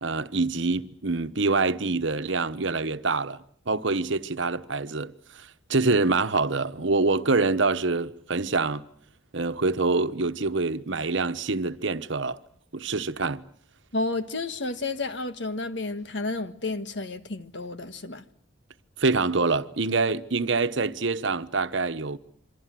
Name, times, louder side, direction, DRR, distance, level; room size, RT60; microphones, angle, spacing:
voice 1, 0.0-8.8 9.3-12.4 12.7-13.4 19.0-22.2, right 3 dB, 75° right, 1.1 m, -26 dB
voice 2, 13.9-18.2, left 2 dB, 65° left, 1.6 m, -31 dB
27.0 x 24.0 x 7.7 m
head